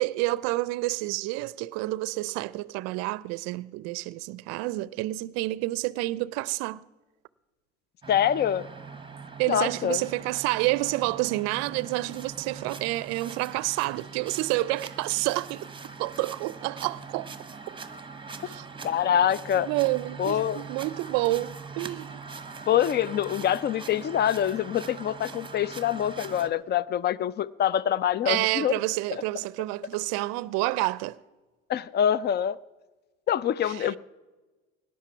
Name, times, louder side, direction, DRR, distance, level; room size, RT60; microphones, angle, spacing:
voice 1, 0.0-6.8 9.4-15.7 16.0-17.3 17.7-17.8 18.4-18.7 19.6-22.2 28.3-31.2 33.7-33.9, right 19 dB, 65° right, 0.5 m, -29 dB
sound 1, 8.0-26.5, right 5 dB, 15° right, 1.1 m, -42 dB
voice 2, 8.1-8.7 9.5-10.0 18.8-19.7 20.2-20.6 22.7-28.8 29.1-29.2 31.7-32.6 33.3-34.0, left 10 dB, 35° left, 0.5 m, -25 dB
18.0 x 10.5 x 5.7 m
hypercardioid pair, 70°, 29 cm